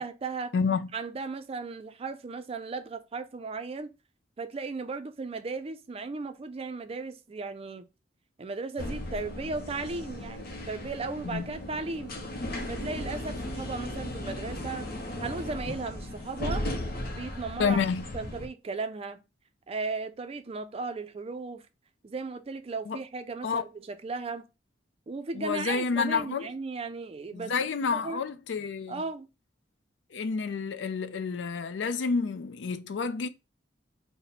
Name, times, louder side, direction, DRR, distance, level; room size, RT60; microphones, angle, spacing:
voice 1, 0.0-0.5 0.9-3.9 4.4-7.9 8.4-12.1 12.7-14.9 15.2-16.7 17.1-17.8 18.1-19.2 19.7-21.6 22.0-24.4 25.1-27.5 27.9-28.2 28.9-29.3, right 4 dB, 30° right, 0.4 m, -36 dB
voice 2, 0.5-0.9 11.3-11.4 17.6-18.1 22.9-23.0 23.4-23.6 25.4-26.5 27.3-29.0 30.1-33.3, left 5 dB, 70° left, 0.4 m, -29 dB
sound 1, 8.8-18.5, left 1 dB, 55° left, 0.8 m, -36 dB
4.0 x 2.1 x 4.1 m
head